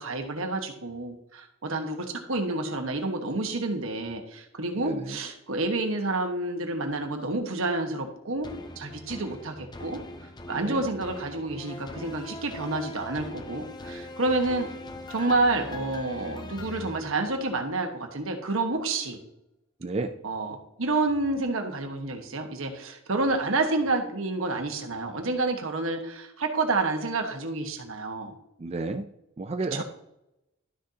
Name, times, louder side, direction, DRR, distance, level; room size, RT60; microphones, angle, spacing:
voice 1, 0.0-8.5 8.8-10.0 10.5-14.7 15.1-19.2 20.2-28.3 29.7-29.8, right 2 dB, 80° right, 4 dB, 1.4 m, -29 dB
voice 2, 4.8-5.2 10.5-10.8 19.8-20.1 28.6-29.0 29.4-29.8, right 3 dB, 30° right, 6 dB, 0.4 m, -31 dB
sound 1, 8.4-17.8 18.3-18.4, left 1 dB, 20° left, 0.5 m, -41 dB
12.0 x 6.5 x 2.8 m, 0.85 s
head